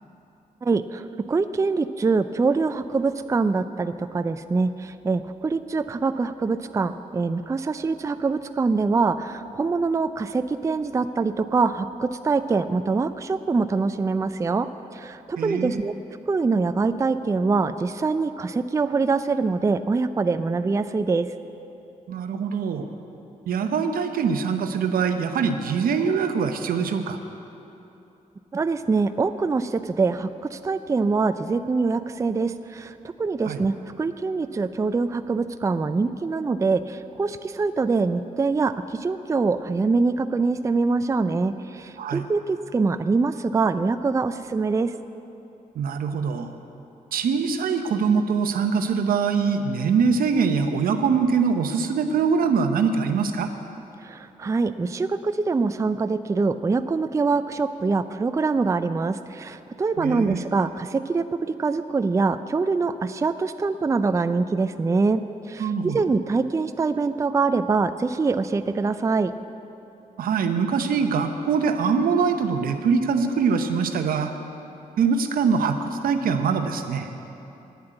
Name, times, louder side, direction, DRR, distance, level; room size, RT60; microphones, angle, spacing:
voice 1, 0.6-14.7 14.9-15.9 16.3-21.3 28.5-44.9 54.0-65.2 65.5-69.3, right 4 dB, 20° right, 11 dB, 0.4 m, -24 dB
voice 2, 15.4-15.8 22.1-22.9 23.5-27.2 33.4-33.6 42.0-42.3 45.8-46.5 47.1-53.5 60.0-60.4 65.6-66.1 70.2-74.3 75.0-77.1, right 5 dB, 80° right, 7 dB, 0.8 m, -23 dB
9.7 x 7.4 x 8.9 m, 2.9 s
cardioid pair, 80°, 15 cm